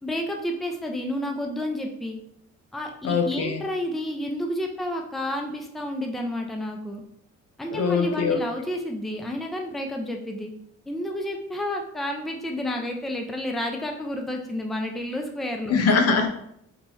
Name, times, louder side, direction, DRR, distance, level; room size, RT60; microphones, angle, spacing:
voice 1, 0.0-2.2 2.7-7.0 7.6-10.5 10.9-15.8, left 1 dB, ahead, 2 dB, 0.5 m, -30 dB
voice 2, 3.0-3.6 7.7-8.4 15.7-16.3, left 5 dB, 55° left, 5 dB, 0.6 m, -22 dB
3.7 x 2.9 x 2.6 m, 0.74 s
cardioid pair, 90°, 30 cm